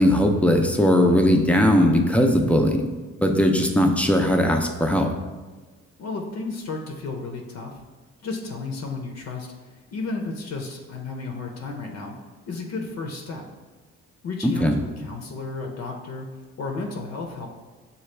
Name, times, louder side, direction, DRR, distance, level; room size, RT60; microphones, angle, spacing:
voice 1, 0.0-2.9 3.2-5.1 14.4-14.8, left 1 dB, 5° left, 3 dB, 0.5 m, -19 dB
voice 2, 6.0-7.8 8.2-12.1 12.5-13.4 14.2-16.3 16.6-17.5, left 3 dB, 60° left, 2 dB, 0.7 m, -33 dB
6.6 x 2.3 x 3.2 m, 1.3 s
cardioid pair, 90°, 30 cm